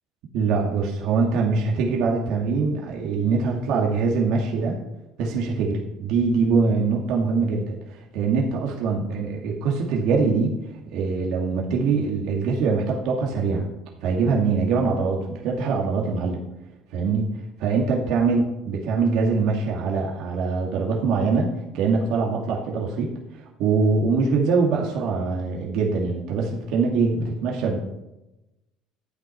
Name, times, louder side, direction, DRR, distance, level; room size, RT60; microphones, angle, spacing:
voice 1, 0.3-4.8 5.2-10.6 10.9-13.7 14.0-16.4 16.9-27.8, right 4 dB, 70° right, -1 dB, 2.3 m, -23 dB
12.0 x 9.1 x 5.8 m, 0.95 s
supercardioid pair, 95°, 0 cm